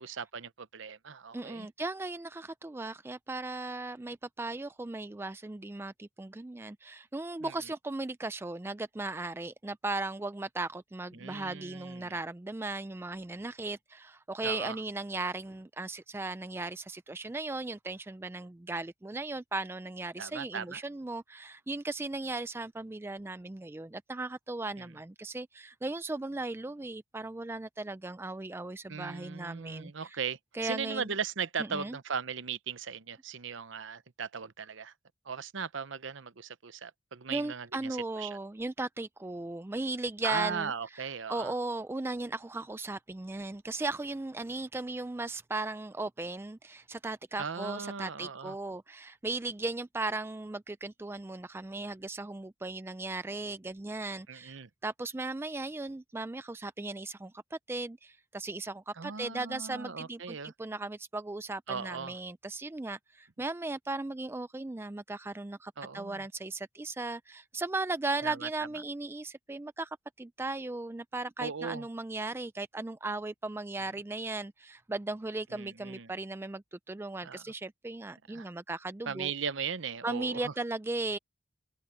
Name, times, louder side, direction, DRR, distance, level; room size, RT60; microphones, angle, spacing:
voice 1, 0.0-1.7 7.4-7.5 11.1-12.2 14.4-14.8 20.2-20.8 24.8-24.9 28.9-34.9 35.2-38.4 40.2-41.5 47.4-48.6 54.3-54.7 59.0-60.5 61.7-62.2 65.8-66.3 68.2-68.5 71.4-71.9 75.5-76.1 77.2-77.4 78.3-78.5 79.1-80.5, right 6 dB, 65° right, 0.8 m, -38 dB
voice 2, 1.3-30.2 30.5-31.1 31.6-32.0 37.3-40.7 41.3-79.3 80.0-81.2, right 2 dB, 10° right, 0.3 m, -37 dB
open air
head